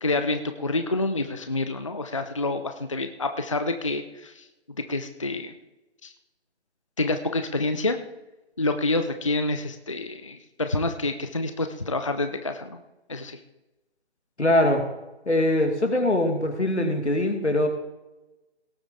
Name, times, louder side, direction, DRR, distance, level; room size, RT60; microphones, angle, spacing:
voice 1, 0.0-4.5 4.9-5.5 6.0-6.1 7.0-8.0 8.6-12.8 13.1-13.4, left 2 dB, 30° left, 8 dB, 0.4 m, -27 dB
voice 2, 14.4-14.8 15.3-17.7, left 1 dB, 80° left, 5 dB, 2.3 m, -22 dB
18.0 x 7.7 x 3.8 m, 1.0 s
figure-of-eight pair, 150°, 33 cm